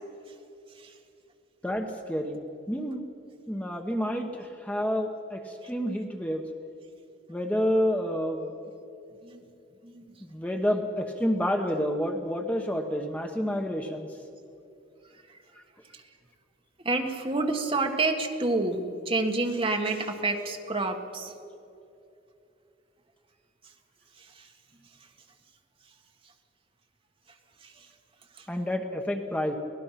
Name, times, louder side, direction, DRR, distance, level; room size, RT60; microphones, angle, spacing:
voice 1, 1.6-2.4 2.7-3.0 3.5-6.4 7.3-8.5 10.2-14.1 28.5-29.5, equal, 10° left, 3 dB, 1.1 m, -29 dB
voice 2, 16.8-21.3, right 2 dB, 30° right, 3 dB, 1.6 m, -28 dB
24.5 x 18.5 x 5.9 m, 2.8 s
head